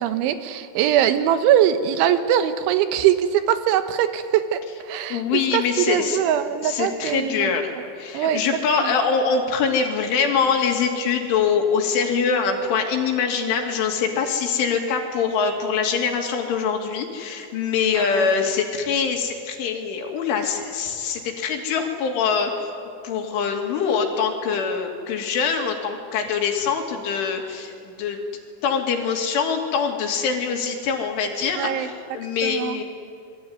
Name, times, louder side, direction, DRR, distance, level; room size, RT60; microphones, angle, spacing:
voice 1, 0.0-5.2 5.5-7.5 8.1-8.4 8.8-9.0 17.9-18.3 31.5-31.9 32.4-32.8, right 10 dB, 85° right, 9 dB, 3.6 m, -22 dB
voice 2, 5.1-6.2 6.6-7.7 8.0-22.7 23.0-28.2 28.6-32.8, left 6 dB, 90° left, 3 dB, 5.1 m, -24 dB
27.5 x 22.5 x 9.6 m, 2.3 s
omnidirectional pair, 5.4 m